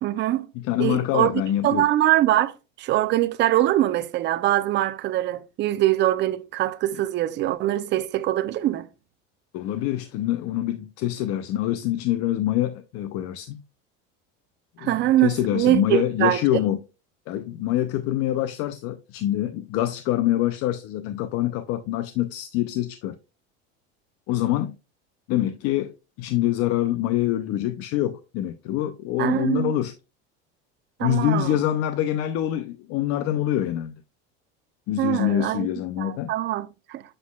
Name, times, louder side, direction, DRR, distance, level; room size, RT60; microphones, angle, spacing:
voice 1, 0.0-0.5 0.8-1.3 1.6-8.9 14.8-16.4 29.2-29.7 31.0-31.6 35.0-35.7 36.0-37.0, right 14 dB, 40° right, 0.5 m, -23 dB
voice 2, 0.6-1.9 9.5-13.6 14.8-16.8 17.3-23.2 24.3-24.8 25.3-25.9 26.2-29.9 31.0-33.9 34.9-36.3, left 13 dB, 50° left, 0.6 m, -25 dB
7.6 x 6.1 x 2.3 m
supercardioid pair, 135°, 29 cm